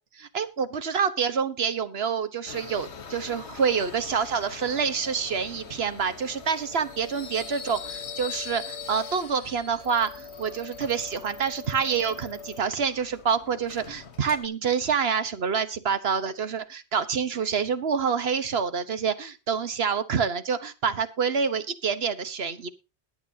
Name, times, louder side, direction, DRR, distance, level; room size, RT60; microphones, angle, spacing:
voice 1, 0.1-22.7, right 6 dB, 65° right, 11 dB, 1.3 m, -27 dB
Subway metro underground, 2.5-14.5, left 7 dB, 75° left, 1.5 m, -43 dB
sound 1, 6.4-12.6, left 4 dB, 45° right, 2.6 m, -44 dB
20.5 x 8.1 x 2.8 m, 0.28 s
omnidirectional pair, 1.1 m